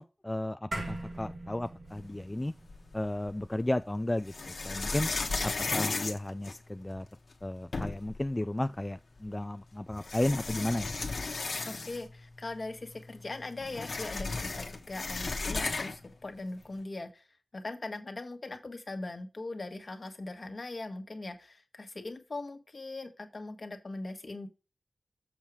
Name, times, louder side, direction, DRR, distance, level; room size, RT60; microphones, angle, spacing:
voice 1, 0.0-2.5 2.9-5.1 5.4-7.1 7.4-11.0, left 1 dB, 20° left, 0.3 m, -33 dB
sound 1, 0.7-5.3, right 2 dB, 60° right, 2.2 m, -43 dB
sound 2, 2.7-3.5 4.2-7.0 7.4-7.5 7.7-8.2 9.3-9.4 10.0-12.2 12.5-12.6 12.9-16.1, left 3 dB, 80° left, 1.2 m, -35 dB
voice 2, 11.7-17.2 17.5-24.5, left 2 dB, 55° left, 1.4 m, -40 dB
7.3 x 4.6 x 4.9 m
wide cardioid pair, 75°, 0 cm